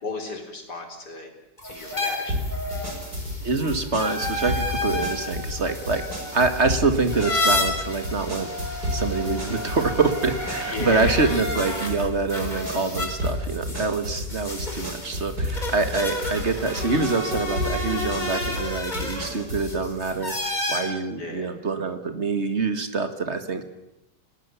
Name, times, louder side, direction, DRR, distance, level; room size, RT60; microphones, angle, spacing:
voice 1, 0.0-1.3 1.6-2.5 10.7-11.3 21.2-21.5, left 3 dB, 65° left, 3 dB, 4.6 m, -35 dB
sound 1, 1.6-11.9 12.3-20.8, left 2 dB, 25° left, 4.7 m, -31 dB
sound 2, 2.3-19.7, left 1 dB, 60° right, 6.5 m, -32 dB
voice 2, 3.4-6.0 6.3-8.5 8.9-23.6, right 4 dB, 40° right, 9 dB, 2.0 m, -25 dB
30.0 x 19.0 x 7.1 m, 0.88 s
omnidirectional pair, 1.9 m